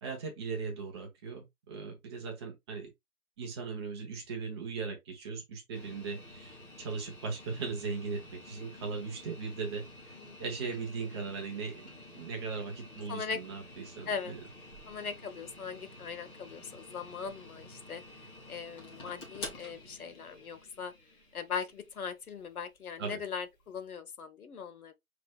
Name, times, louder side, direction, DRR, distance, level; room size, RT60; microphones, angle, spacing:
voice 1, 0.0-2.9 3.4-14.4 23.0-23.2, right 5 dB, 20° right, 0.9 m, -38 dB
sound 1, 5.7-23.8, left 1 dB, 10° left, 0.8 m, -50 dB
voice 2, 13.1-13.4 14.1-14.3 14.9-18.0 18.5-20.9 21.3-24.9, left 6 dB, 75° left, 1.2 m, -39 dB
5.9 x 3.3 x 2.3 m
hypercardioid pair, 150°, 44 cm